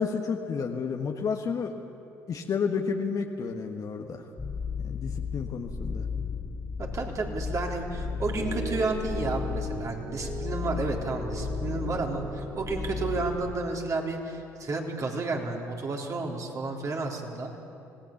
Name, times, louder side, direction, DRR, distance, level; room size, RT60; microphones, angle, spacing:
voice 1, 0.0-1.7 2.3-4.2 4.8-6.0, left 5 dB, 45° left, 3 dB, 1.5 m, -31 dB
sound 1, 4.4-13.6, left 6 dB, 25° left, 2.6 m, -34 dB
voice 2, 6.8-17.6, right 3 dB, 40° right, 1 dB, 3.6 m, -31 dB
Piano, 8.4-13.4, right 3 dB, 60° right, 4.8 m, -39 dB
26.0 x 18.0 x 7.3 m, 2.7 s
hypercardioid pair, 60°, 8 cm